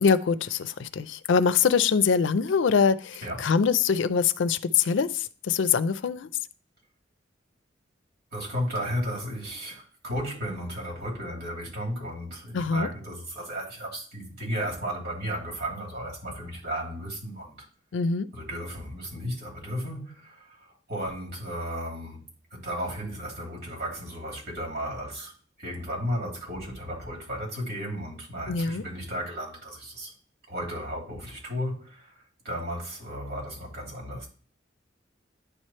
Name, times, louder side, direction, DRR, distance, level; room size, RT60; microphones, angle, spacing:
voice 1, 0.0-6.3 12.5-12.9 17.9-18.3 28.5-28.8, left 6 dB, 75° left, 0.4 m, -24 dB
voice 2, 8.3-17.7 18.3-25.3 25.6-30.1 30.5-34.3, equal, 60° right, 2.9 m, -34 dB
9.9 x 3.3 x 4.2 m
head